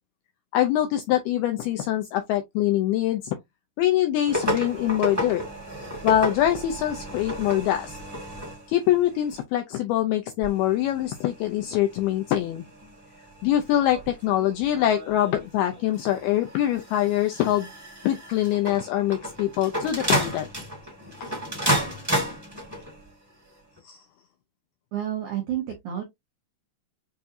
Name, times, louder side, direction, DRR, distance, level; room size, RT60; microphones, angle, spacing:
voice 1, 0.5-3.4 3.8-5.4 6.0-8.0 8.7-12.6 13.4-17.7 18.0-20.5 23.8-24.0, left 12 dB, 85° left, 2.2 m, -24 dB
sound 1, 4.3-9.4 10.4-23.1 23.8-23.9, equal, 10° right, 0.9 m, -32 dB
voice 2, 24.9-26.0, right 11 dB, 80° right, 1.7 m, -30 dB
7.6 x 2.6 x 2.7 m
omnidirectional pair, 5.2 m